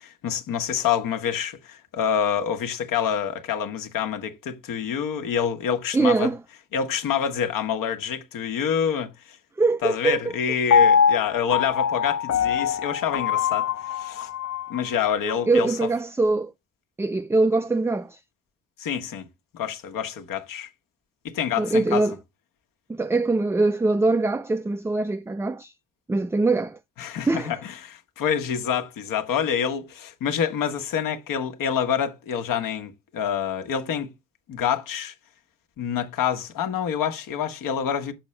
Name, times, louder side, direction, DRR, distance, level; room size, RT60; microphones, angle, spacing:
voice 1, 0.0-6.3 6.7-9.4 9.8-14.3 14.7-15.9 18.8-19.3 19.5-20.7 21.2-22.0 27.0-34.1 34.5-35.1 35.8-38.1, left 8 dB, 65° left, 1.4 m, -27 dB
voice 2, 5.9-6.4 9.6-10.2 15.5-16.5 17.0-18.2 21.6-22.2 22.9-25.7 26.1-26.8 27.3-27.6, right 3 dB, 10° right, 0.4 m, -22 dB
Piano, 10.7-14.8 15.3-15.4, left 7 dB, 50° left, 0.8 m, -22 dB
6.2 x 5.8 x 3.2 m
hypercardioid pair, 50°, 36 cm